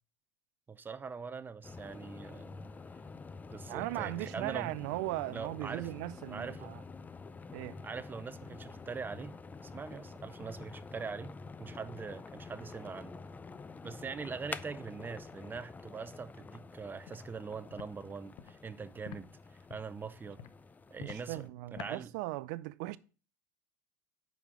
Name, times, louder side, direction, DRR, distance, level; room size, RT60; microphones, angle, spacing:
voice 1, 0.7-2.6 3.5-4.7 5.3-5.9 6.3-6.8 7.8-11.3 11.6-13.2 13.8-20.4 20.9-22.1, right 5 dB, 20° right, 0.6 m, -43 dB
sound 1, 1.6-21.5, left 4 dB, 15° left, 0.4 m, -48 dB
voice 2, 3.7-6.8 7.5-7.8 21.0-23.0, right 18 dB, 70° right, 0.4 m, -38 dB
Walk footsteps, 17.1-17.2 17.7-17.9 18.3-18.5 19.0-19.2 19.7-19.9 20.4-20.5 21.0-21.2 21.8-21.9, left 11 dB, 55° left, 0.7 m, -46 dB
5.2 x 4.7 x 6.0 m
hypercardioid pair, 90°, 10 cm